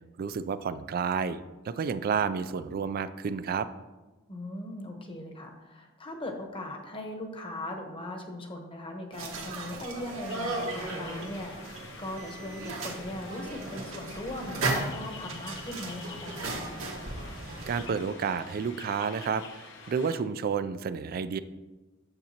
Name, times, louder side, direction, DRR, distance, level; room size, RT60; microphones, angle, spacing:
voice 1, 0.2-1.4 1.6-3.7 17.7-21.4, right 6 dB, 45° right, 13 dB, 0.3 m, -30 dB
voice 2, 4.3-16.5, left 1 dB, 25° left, 3 dB, 1.0 m, -39 dB
sound 1, 9.1-17.9, right 2 dB, 75° right, 1.4 m, -36 dB
sound 2, 10.3-20.2, left 4 dB, 65° left, 0.9 m, -48 dB
9.0 x 6.9 x 2.9 m, 1.2 s
head